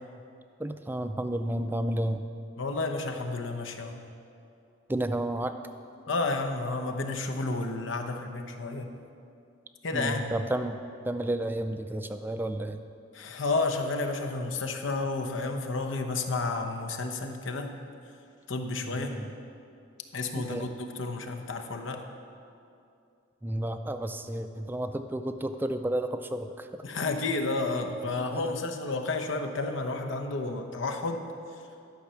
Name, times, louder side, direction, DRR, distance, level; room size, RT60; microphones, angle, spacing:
voice 1, 0.6-2.2 4.9-5.5 9.9-10.8 11.0-12.8 18.8-19.3 20.4-20.7 23.4-26.7 28.3-28.4, right 1 dB, 10° right, 8 dB, 0.3 m, -31 dB
voice 2, 2.6-4.0 6.1-8.9 9.8-10.3 13.1-17.7 18.5-19.2 20.1-22.0 26.8-31.3, left 3 dB, 80° left, 4 dB, 0.9 m, -31 dB
12.0 x 5.6 x 6.9 m, 2.5 s
head